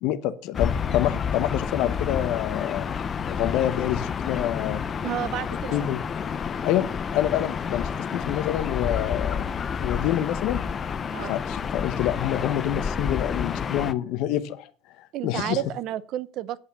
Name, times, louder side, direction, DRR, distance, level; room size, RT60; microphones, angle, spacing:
voice 1, 0.0-2.9 3.3-4.8 5.7-6.0 6.6-6.9 7.1-9.5 9.8-10.6 11.3-14.7 15.0-15.6, left 12 dB, 55° left, 1.1 m, -27 dB
Gull seagull / Ocean, 0.5-13.9, left 6 dB, 25° left, 0.6 m, -29 dB
voice 2, 5.0-5.8 11.1-11.3 15.1-16.6, right 12 dB, 45° right, 0.7 m, -31 dB
9.5 x 8.5 x 7.1 m
cardioid pair, 160°, 0 cm